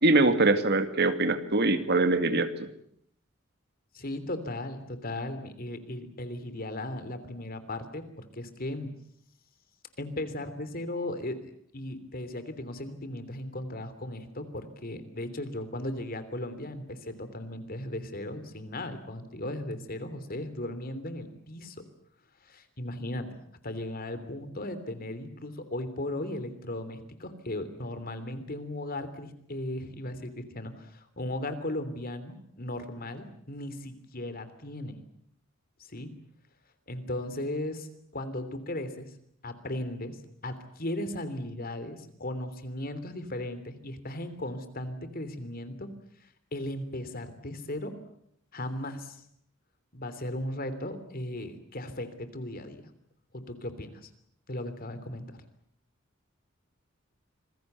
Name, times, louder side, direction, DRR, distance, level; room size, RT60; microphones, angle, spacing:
voice 1, 0.0-2.7, right 2 dB, 55° right, 9 dB, 2.3 m, -23 dB
voice 2, 3.9-8.9 10.0-21.8 22.4-35.0 35.9-36.1 36.9-37.9 38.1-39.1 39.4-45.9 46.2-47.9 48.5-49.2 49.9-52.9 53.3-54.1 54.5-55.4, left 1 dB, 50° left, 11 dB, 3.2 m, -37 dB
27.0 x 21.0 x 8.2 m, 0.71 s
head